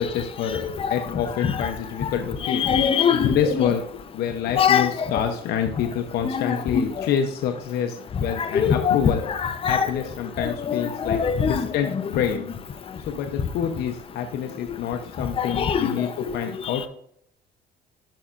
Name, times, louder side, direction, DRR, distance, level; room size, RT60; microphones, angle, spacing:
voice 1, 0.0-2.6 3.1-9.2 9.6-12.5 13.1-16.9, left 8 dB, 75° left, 0.8 m, -27 dB
voice 2, 2.4-3.4 4.6-4.9 6.3-6.8 8.5-9.0 9.3-9.9 10.4-11.6 15.4-15.9, left 7 dB, 35° left, 0.8 m, -22 dB
12.0 x 5.5 x 2.5 m
cardioid pair, 110°, 17 cm